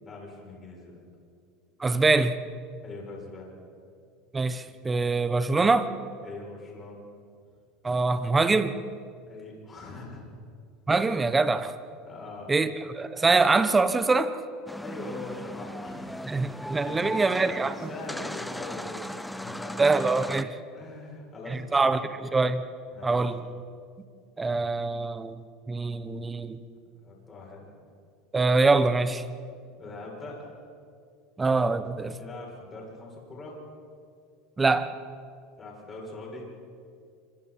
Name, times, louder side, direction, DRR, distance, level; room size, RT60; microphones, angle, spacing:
voice 1, 0.0-1.0 2.8-3.5 6.2-7.0 9.3-10.3 12.0-12.5 14.8-19.9 20.7-22.0 22.9-23.3 26.8-27.7 29.8-30.5 32.2-33.6 35.6-36.5, left 2 dB, 25° left, -2 dB, 7.6 m, -42 dB
voice 2, 1.8-2.4 4.3-5.9 7.8-8.8 10.9-11.7 12.5-14.4 16.3-17.9 19.8-20.5 21.5-22.6 23.0-23.4 24.4-25.4 25.7-26.6 28.3-29.2 31.4-32.2 34.6-34.9, right 3 dB, 15° right, 12 dB, 1.1 m, -24 dB
sound 1, 14.7-20.4, left 1 dB, 5° left, 0.6 m, -37 dB
27.5 x 25.5 x 4.5 m, 2.3 s
supercardioid pair, 130°, 0 cm